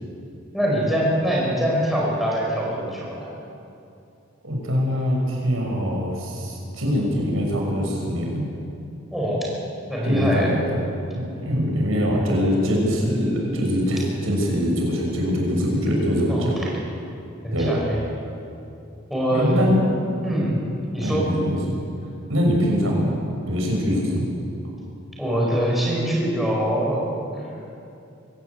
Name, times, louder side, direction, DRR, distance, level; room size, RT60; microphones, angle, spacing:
voice 1, 0.5-3.3 9.1-9.5 9.9-10.5 16.3-16.4 17.4-18.0 19.1-19.7 20.2-20.6 20.9-21.3 25.2-27.0 27.3-27.4, equal, ahead, -4 dB, 5.2 m, -23 dB
voice 2, 4.4-8.4 10.0-10.6 11.1-16.6 17.5-17.8 19.3-19.9 20.3-20.4 21.0-21.6 22.3-23.1 23.4-24.3, equal, 75° right, -1 dB, 6.4 m, -23 dB
24.0 x 17.5 x 8.3 m, 2.6 s
head